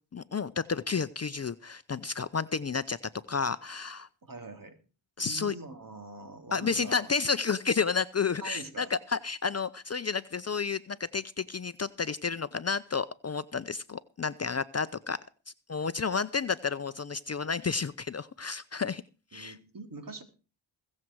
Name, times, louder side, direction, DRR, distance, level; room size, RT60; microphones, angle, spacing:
voice 1, 0.1-3.0 3.3-4.1 5.2-5.5 6.5-15.2 15.7-19.0 19.3-19.6, left 5 dB, 35° left, 14 dB, 0.7 m, -31 dB
voice 2, 4.2-4.8 5.2-7.1 8.4-8.9 19.3-20.2, right 3 dB, 45° right, 6 dB, 3.6 m, -44 dB
21.5 x 7.6 x 4.7 m, 0.35 s
cardioid pair, 55°, 45 cm